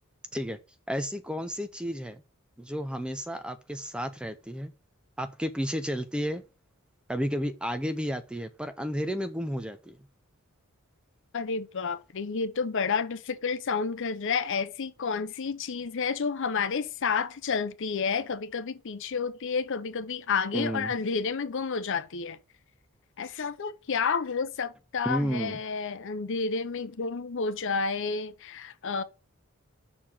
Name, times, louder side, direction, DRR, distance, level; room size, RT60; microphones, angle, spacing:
voice 1, 0.9-2.2 2.6-4.7 5.2-6.4 7.1-10.0 20.5-20.9 25.1-25.6, equal, 5° right, 0.4 m, -32 dB
voice 2, 11.3-22.4 23.2-29.0, left 5 dB, 55° left, 0.6 m, -30 dB
5.7 x 4.2 x 6.3 m
head